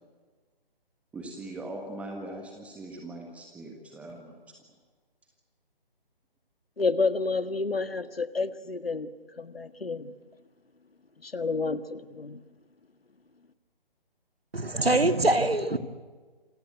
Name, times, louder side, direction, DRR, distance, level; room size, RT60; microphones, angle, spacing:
voice 1, 1.1-4.4, right 2 dB, 5° right, 2 dB, 1.6 m, -40 dB
voice 2, 6.8-9.1 9.4-10.1 11.2-12.4, left 4 dB, 80° left, 13 dB, 1.7 m, -29 dB
voice 3, 14.5-15.8, right 2 dB, 80° right, 10 dB, 2.4 m, -23 dB
28.0 x 15.5 x 9.4 m, 1.4 s
figure-of-eight pair, 150°, 30 cm